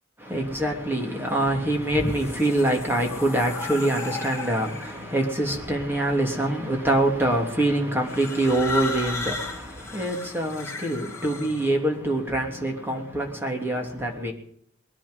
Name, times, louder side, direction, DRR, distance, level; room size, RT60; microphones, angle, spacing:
voice 1, 0.2-14.3, right 1 dB, 10° right, 3.1 m, -25 dB
sound 1, 1.7-5.1 6.0-6.5 8.0-11.7, left 3 dB, 15° left, 2.0 m, -35 dB
21.5 x 10.5 x 5.5 m
head